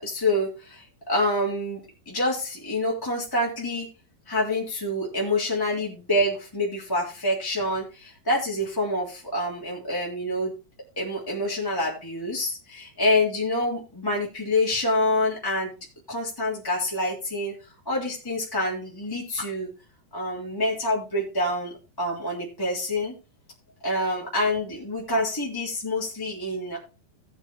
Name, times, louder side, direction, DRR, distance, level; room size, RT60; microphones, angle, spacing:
voice 1, 0.0-3.9 4.3-10.5 11.0-15.7 16.1-17.5 17.8-19.7 20.1-23.1 23.8-26.8, left 1 dB, 5° left, -5 dB, 3.1 m, -27 dB
19.0 x 8.1 x 2.2 m, 0.31 s
omnidirectional pair, 4.3 m